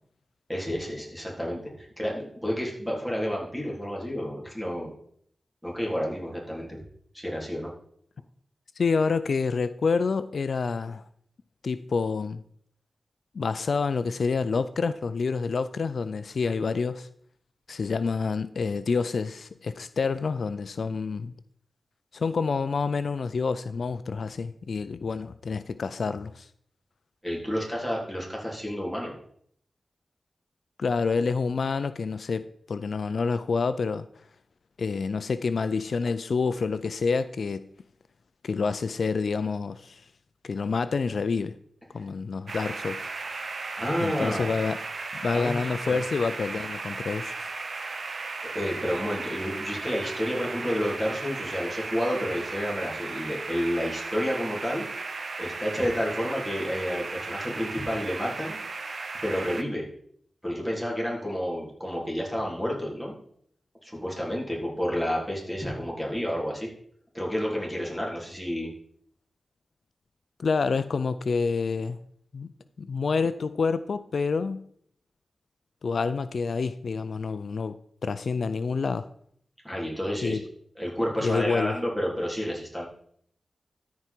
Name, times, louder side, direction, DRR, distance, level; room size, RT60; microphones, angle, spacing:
voice 1, 0.5-4.9 5.6-6.8 7.1-7.7 27.2-29.1 43.8-44.5 45.3-45.6 45.9-46.0 48.5-54.9 55.4-58.6 59.2-59.8 60.4-63.1 63.8-66.7 67.1-68.7 79.6-80.4 80.8-82.9, equal, 5° right, -3 dB, 3.5 m, -30 dB
voice 2, 8.8-11.0 11.6-12.4 13.3-17.1 17.7-21.3 22.1-26.5 30.8-34.0 34.8-37.6 38.4-40.0 40.4-41.5 41.9-43.0 44.0-44.8 45.2-47.5 70.4-72.0 72.3-72.5 72.8-74.6 75.8-77.8 78.0-79.1 80.2-80.4 81.2-81.7, left 4 dB, 75° left, 13 dB, 0.4 m, -28 dB
sound 1, 42.5-59.6, right 3 dB, 65° right, 0.9 m, -36 dB
13.5 x 4.7 x 4.5 m, 0.65 s
wide cardioid pair, 70°, 0 cm